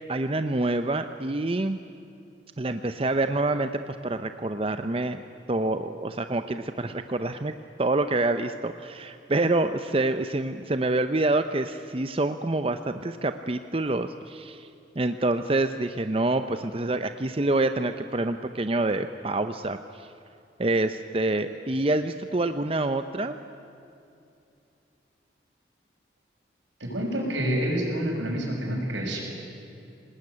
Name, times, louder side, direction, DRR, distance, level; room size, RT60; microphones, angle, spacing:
voice 1, 0.1-1.8 2.6-5.2 5.5-14.7 15.0-20.1 20.6-23.4, right 2 dB, 30° right, 9 dB, 0.6 m, -27 dB
voice 2, 26.8-29.2, equal, 85° right, 0 dB, 6.4 m, -28 dB
26.0 x 19.0 x 9.8 m, 2.7 s
head